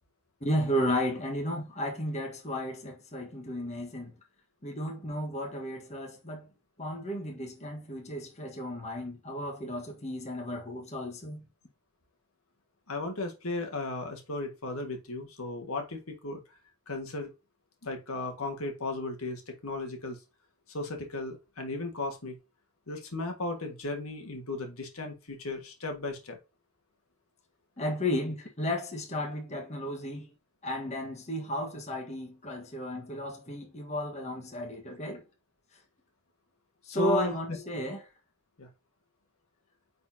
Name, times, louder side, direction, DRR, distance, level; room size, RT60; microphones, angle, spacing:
voice 1, 0.4-4.1 4.6-6.5 6.8-11.4 27.8-30.3 30.6-35.2 36.9-38.0, left 1 dB, 30° left, 1.5 m, -33 dB
voice 2, 12.9-16.4 16.9-17.3 17.8-20.2 20.7-22.3 22.9-26.4 36.9-37.6 38.6-38.7, left 2 dB, 70° left, 1.7 m, -35 dB
9.4 x 4.2 x 2.8 m
head